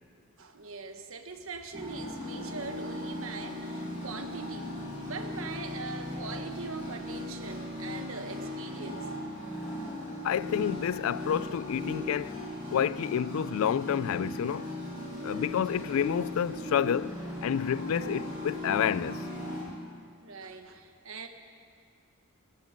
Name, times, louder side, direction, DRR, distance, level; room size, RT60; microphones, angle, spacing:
voice 1, 0.4-4.7 5.0-9.1 20.2-21.3, right 4 dB, 65° right, 1.2 m, -41 dB
sound 1, 1.7-19.6, left 1 dB, 20° right, 5.8 m, -38 dB
voice 2, 10.2-12.4 12.7-14.7 15.2-19.3, left 8 dB, 70° left, 0.3 m, -29 dB
19.5 x 14.5 x 5.2 m
head